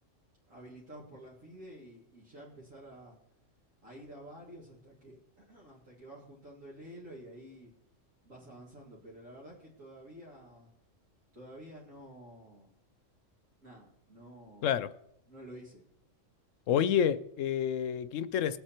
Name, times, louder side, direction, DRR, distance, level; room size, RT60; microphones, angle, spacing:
voice 1, 0.5-3.2 3.8-7.7 8.2-10.7 11.3-12.7 13.6-14.8 15.3-15.9, right 1 dB, 80° right, 2.8 m, -50 dB
voice 2, 16.7-18.6, left 9 dB, 80° left, 1.0 m, -28 dB
19.5 x 8.0 x 4.4 m
omnidirectional pair, 1.3 m